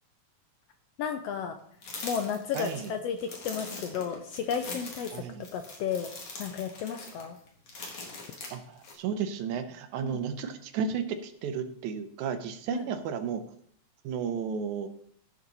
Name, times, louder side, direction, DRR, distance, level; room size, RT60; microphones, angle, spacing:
voice 1, 1.0-1.6 2.0-5.2 5.5-6.1 6.4-7.4 10.0-10.2 12.7-12.9, left 7 dB, 75° left, 7 dB, 1.5 m, -33 dB
sound 1, 1.8-8.9, left 3 dB, 50° left, 2.7 m, -42 dB
voice 2, 2.5-2.9 5.1-5.5 8.5-13.4 14.0-14.9, right 7 dB, 80° right, 8 dB, 2.3 m, -33 dB
15.5 x 6.0 x 4.1 m, 0.66 s
omnidirectional pair, 3.4 m